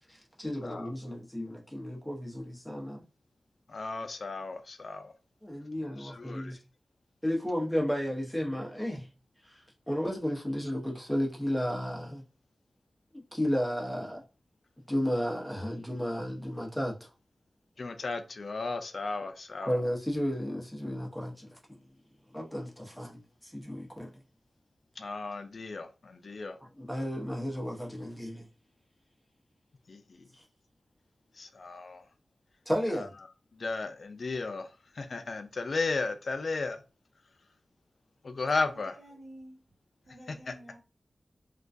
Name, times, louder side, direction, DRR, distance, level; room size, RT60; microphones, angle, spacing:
voice 1, 0.1-3.0 5.4-6.6 7.2-9.1 9.5-9.6 9.9-12.2 13.3-14.2 14.9-17.0 19.6-21.5 22.3-24.1 26.8-28.5 30.3-30.4 32.7-33.1, equal, 5° left, 0.7 m, -33 dB
voice 2, 3.7-5.1 6.0-6.5 17.8-19.8 25.0-26.6 29.9-30.0 31.4-32.0 32.9-33.1 33.6-34.7 35.0-36.8 38.2-39.0 40.3-40.5, left 3 dB, 60° left, 0.4 m, -34 dB
voice 3, 38.7-39.6 40.1-40.8, right 1 dB, 65° right, 0.9 m, -50 dB
2.3 x 2.2 x 2.5 m
wide cardioid pair, 80°, 0 cm